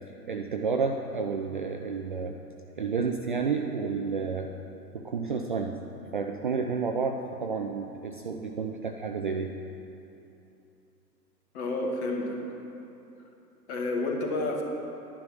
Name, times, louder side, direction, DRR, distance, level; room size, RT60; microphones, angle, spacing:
voice 1, 0.2-2.4 2.8-4.5 4.9-5.8 6.1-9.5, right 5 dB, 35° right, 3 dB, 0.4 m, -30 dB
voice 2, 11.5-12.4 13.7-14.6, left 2 dB, 40° left, 1 dB, 2.0 m, -30 dB
11.5 x 9.9 x 5.9 m, 2.9 s
figure-of-eight pair, 110°, 50 cm